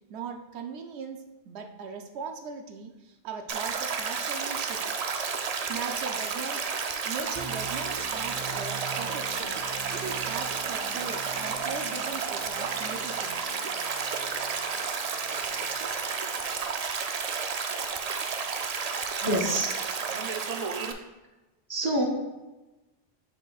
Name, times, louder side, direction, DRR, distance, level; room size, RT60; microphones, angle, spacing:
voice 1, 0.1-4.8 5.7-6.6 7.0-9.6 9.9-13.4, right 5 dB, 85° right, 5 dB, 0.9 m, -39 dB
Stream, 3.5-20.9, right 5 dB, 55° right, 0.5 m, -31 dB
sound 1, 7.3-16.6, right 3 dB, 30° left, 1.2 m, -44 dB
voice 2, 19.2-19.8 21.7-22.1, right 1 dB, 25° right, 0 dB, 0.9 m, -26 dB
6.7 x 6.0 x 2.4 m, 1.1 s
omnidirectional pair, 1.1 m